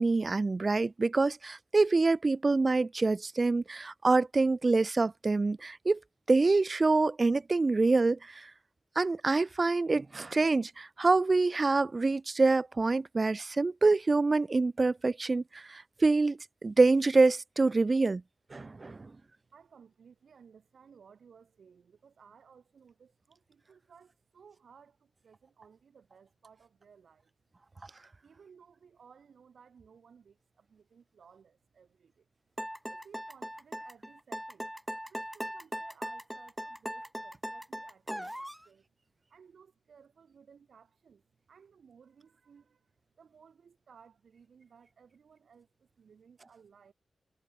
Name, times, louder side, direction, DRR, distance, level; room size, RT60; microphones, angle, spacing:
voice 1, 0.0-6.0 6.3-8.2 9.0-15.4 15.7-18.2 18.5-19.0, right 3 dB, 40° right, 0.4 m, -26 dB
voice 2, 19.5-27.3 28.2-32.3 32.9-34.7 35.1-38.8 39.3-41.2 41.5-42.9 43.2-46.9, right 6 dB, 75° right, 2.0 m, -59 dB
sound 1, 32.6-38.6, equal, 5° right, 2.6 m, -39 dB
cardioid pair, 50°, 0 cm